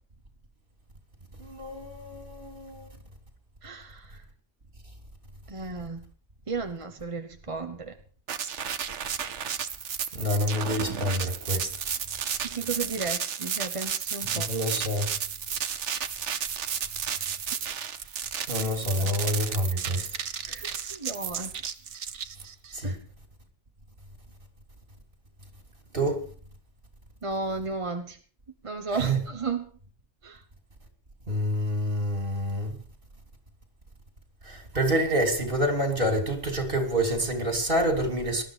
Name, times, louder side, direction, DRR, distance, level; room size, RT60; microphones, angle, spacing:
voice 1, 1.4-2.9 10.1-11.8 14.3-15.1 18.5-20.1 22.7-22.9 25.9-26.2 29.0-29.2 31.3-32.7 34.4-38.4, equal, 45° right, 3.5 m, -27 dB
voice 2, 3.6-4.2 5.5-6.0 6.5-8.0 12.5-14.5 19.0-19.1 20.4-21.6 22.8-23.0 27.2-28.2 28.6-29.7 30.2-30.4, right 4 dB, 30° right, 1.0 m, -34 dB
sound 1, 8.3-22.7, right 8 dB, 75° right, 1.3 m, -32 dB
19.5 x 12.5 x 5.0 m
omnidirectional pair, 1.3 m